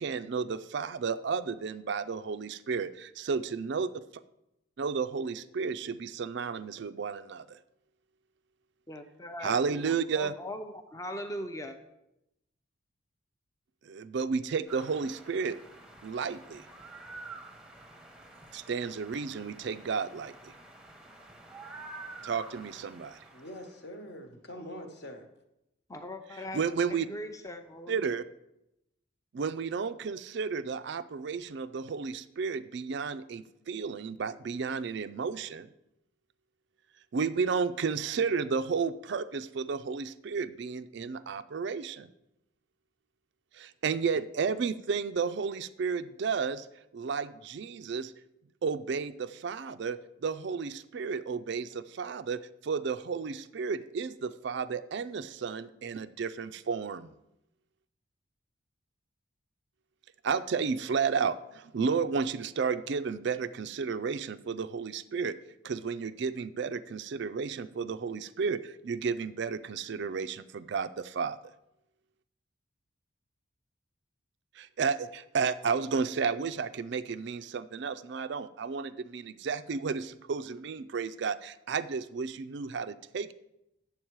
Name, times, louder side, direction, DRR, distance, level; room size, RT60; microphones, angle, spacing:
voice 1, 0.0-3.9 4.8-7.6 9.4-10.3 13.8-15.6 16.0-16.7 18.5-20.5 22.2-23.2 26.3-27.1 27.9-28.2 29.3-35.7 37.1-42.1 43.5-46.7 46.9-48.1 48.6-57.1 60.2-65.4 65.6-71.4 74.6-83.3, right 5 dB, 55° right, 12 dB, 0.4 m, -32 dB
voice 2, 8.9-11.8 25.9-26.6 27.1-28.1, left 1 dB, 15° left, 6 dB, 0.6 m, -40 dB
sound 1, 14.7-23.8, right 2 dB, 5° right, 0.8 m, -49 dB
voice 3, 23.3-25.3, equal, 50° left, 5 dB, 1.1 m, -44 dB
8.8 x 7.2 x 4.6 m, 0.86 s
head